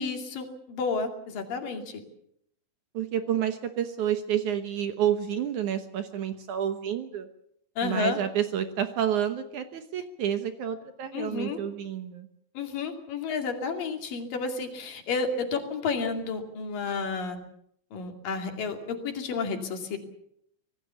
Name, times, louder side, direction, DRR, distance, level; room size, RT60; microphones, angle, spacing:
voice 1, 0.0-2.0 7.8-8.2 11.1-11.6 12.5-17.4 17.9-20.0, left 4 dB, 65° left, 4 dB, 4.1 m, -31 dB
voice 2, 2.9-7.3 7.8-12.3, right 9 dB, 65° right, 8 dB, 2.3 m, -29 dB
25.5 x 18.5 x 7.1 m, 0.74 s
omnidirectional pair, 4.3 m